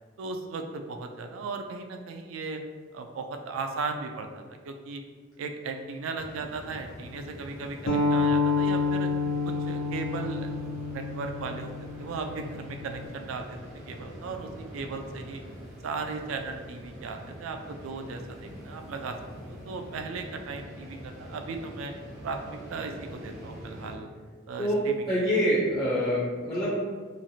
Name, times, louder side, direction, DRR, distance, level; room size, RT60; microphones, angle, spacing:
voice 1, 0.2-2.6 2.9-5.0 5.4-9.1 9.4-10.5 10.9-11.7 12.0-13.6 13.9-15.4 15.8-19.2 19.5-21.9 22.2-24.1 24.5-25.0, right 4 dB, 80° right, 5 dB, 0.3 m, -36 dB
sound 1, 6.1-24.0, equal, 65° right, 0.9 m, -44 dB
sound 2, 7.9-13.1, left 3 dB, 80° left, 0.4 m, -28 dB
voice 2, 24.6-26.7, equal, 20° left, -8 dB, 0.5 m, -26 dB
3.1 x 2.4 x 2.6 m, 1.5 s
head